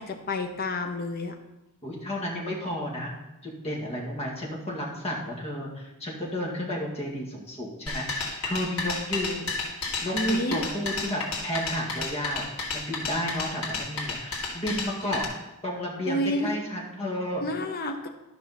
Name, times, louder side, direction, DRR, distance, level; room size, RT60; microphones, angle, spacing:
voice 1, 0.0-1.3 10.1-10.6 16.1-16.5 17.4-18.1, left 1 dB, 45° left, 5 dB, 0.9 m, -29 dB
voice 2, 1.8-3.1 3.4-9.5 10.0-12.4 12.7-15.2 15.6-17.4, left 1 dB, 30° left, -3 dB, 2.2 m, -32 dB
sound 1, 7.9-15.2, left 3 dB, 80° left, 2.2 m, -32 dB
12.5 x 5.6 x 4.3 m, 0.97 s
head